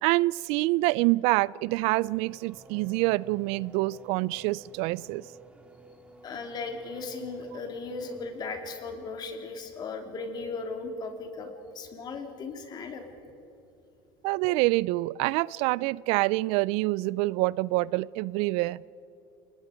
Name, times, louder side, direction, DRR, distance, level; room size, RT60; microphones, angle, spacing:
voice 1, 0.0-5.2 14.2-18.8, right 21 dB, 70° right, 23 dB, 0.4 m, -26 dB
Race car auto racing / Accelerating revving vroom, 1.6-8.9, right 3 dB, 10° right, 2.3 m, -53 dB
voice 2, 6.2-13.0, left 3 dB, 40° left, 4 dB, 3.0 m, -37 dB
29.5 x 19.5 x 5.1 m, 3.0 s
supercardioid pair, 120°, 11 cm